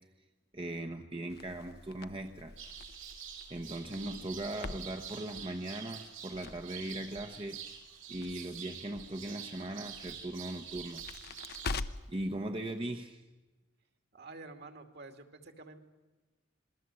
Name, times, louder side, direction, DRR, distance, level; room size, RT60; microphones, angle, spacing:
voice 1, 0.5-2.5 3.5-7.6 8.1-11.0 12.1-13.2, right 1 dB, 25° right, 5 dB, 1.1 m, -39 dB
Crackle, 1.3-12.2, left 3 dB, 55° left, 0.8 m, -46 dB
sound 1, 2.6-11.8, right 8 dB, 80° right, 5.0 m, -47 dB
voice 2, 14.1-15.8, right 3 dB, 55° right, 6 dB, 2.6 m, -49 dB
27.0 x 21.5 x 7.8 m, 1.2 s
head